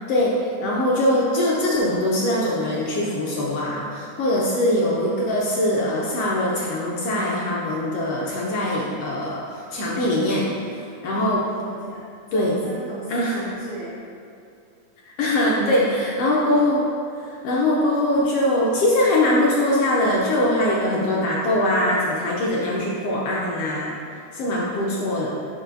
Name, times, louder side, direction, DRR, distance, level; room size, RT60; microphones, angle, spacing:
voice 1, 0.1-10.5 11.0-11.5 12.3-12.6 13.1-13.4 15.2-16.9 17.4-23.9 24.3-25.3, left 1 dB, 75° left, -4 dB, 1.4 m, -22 dB
voice 2, 10.7-14.0 15.5-16.9 17.1-17.4, right 2 dB, 80° right, -6 dB, 1.2 m, -36 dB
11.0 x 4.9 x 2.6 m, 2.4 s
omnidirectional pair, 3.6 m